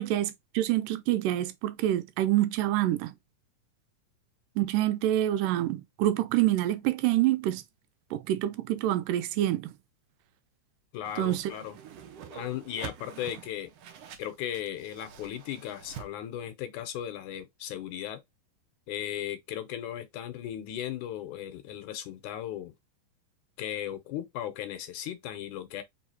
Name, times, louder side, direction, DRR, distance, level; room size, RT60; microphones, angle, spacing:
voice 1, 0.0-3.1 4.6-7.6 8.1-9.7 11.2-11.5, right 14 dB, 90° right, 2.2 m, -27 dB
voice 2, 10.9-11.8 12.3-13.7 14.2-18.2 18.9-22.7 23.6-25.8, left 11 dB, 75° left, 2.1 m, -36 dB
Whoosh swoosh swish, 11.0-16.1, right 8 dB, 70° right, 1.6 m, -46 dB
4.8 x 3.6 x 2.7 m
omnidirectional pair, 3.8 m